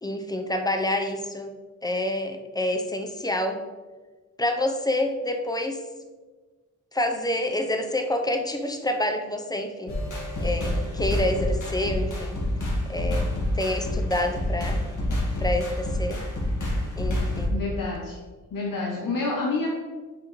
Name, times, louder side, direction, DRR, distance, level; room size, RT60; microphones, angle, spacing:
voice 1, 0.0-1.5 1.8-3.6 4.4-5.8 6.9-10.0 10.4-12.4 12.9-14.8 15.4-16.2 17.0-17.6, left 1 dB, 10° left, 5 dB, 0.6 m, -28 dB
sound 1, 9.9-17.5, left 1 dB, 65° left, 1.9 m, -27 dB
voice 2, 17.5-18.2 18.5-19.7, left 3 dB, 90° left, -2 dB, 0.9 m, -28 dB
7.0 x 5.0 x 3.1 m, 1.4 s
wide cardioid pair, 100°, 32 cm